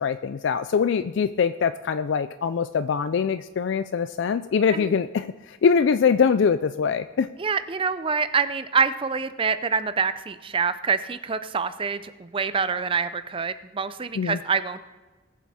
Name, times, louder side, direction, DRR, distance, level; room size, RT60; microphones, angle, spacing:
voice 1, 0.0-7.3 14.2-14.4, left 6 dB, 60° left, 12 dB, 0.3 m, -23 dB
voice 2, 7.4-14.8, right 5 dB, 25° right, 12 dB, 0.5 m, -26 dB
20.0 x 7.4 x 4.2 m, 1.3 s
head